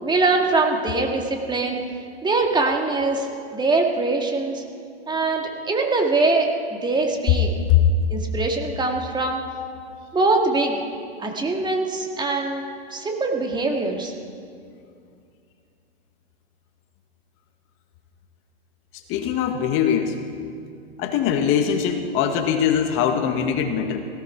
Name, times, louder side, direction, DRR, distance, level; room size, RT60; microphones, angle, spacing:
voice 1, 0.0-1.8 2.2-3.3 3.5-4.6 5.1-7.5 8.1-9.4 10.1-10.8 11.2-12.6 12.9-14.1, right 3 dB, 15° right, 2 dB, 2.1 m, -22 dB
voice 2, 18.9-20.2 21.0-24.1, left 8 dB, 40° left, 6 dB, 1.5 m, -22 dB
17.0 x 17.0 x 4.6 m, 2.3 s
hypercardioid pair, 110°, 32 cm